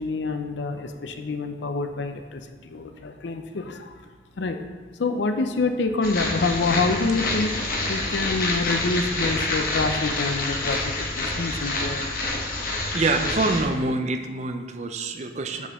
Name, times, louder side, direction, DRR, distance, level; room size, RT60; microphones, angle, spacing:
voice 1, 0.0-4.0 4.4-4.6 5.0-12.3, left 3 dB, 85° left, 7 dB, 0.5 m, -27 dB
sound 1, 6.0-13.6, left 2 dB, 55° left, 0.9 m, -27 dB
voice 2, 12.9-15.7, right 2 dB, 40° right, 6 dB, 0.5 m, -26 dB
8.1 x 4.3 x 3.6 m, 1.4 s
head